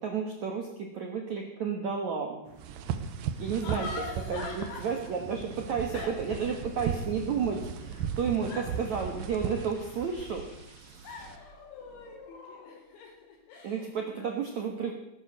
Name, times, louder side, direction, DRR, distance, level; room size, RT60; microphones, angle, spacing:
voice 1, 0.0-2.4 3.4-3.9 4.3-8.5 8.8-10.4 13.6-14.9, right 6 dB, 65° right, 2 dB, 1.9 m, -32 dB
sound 1, 2.4-9.0, right 4 dB, 40° right, 2.4 m, -50 dB
sound 2, 2.6-11.4, right 7 dB, 90° right, 1.9 m, -37 dB
voice 2, 3.3-4.8 5.9-6.1 8.5-8.6 11.0-14.7, left 3 dB, 70° left, 1 dB, 5.8 m, -42 dB
sound 3, 5.2-13.0, left 2 dB, 45° left, 3.2 m, -52 dB
19.0 x 9.8 x 6.6 m, 0.88 s
omnidirectional pair, 5.4 m